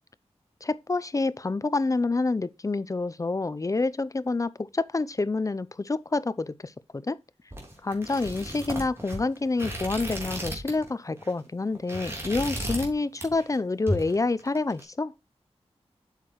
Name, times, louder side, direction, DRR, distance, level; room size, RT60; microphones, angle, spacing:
voice 1, 0.6-6.7 7.1-7.2 7.8-15.1, left 3 dB, 30° left, 0.5 m, -28 dB
sound 1, 7.5-10.9 11.2-11.4 11.7-12.9 13.2-13.6 13.9-14.8, equal, 20° right, 3.3 m, -34 dB
8.1 x 6.6 x 3.0 m
wide cardioid pair, 100°, 11 cm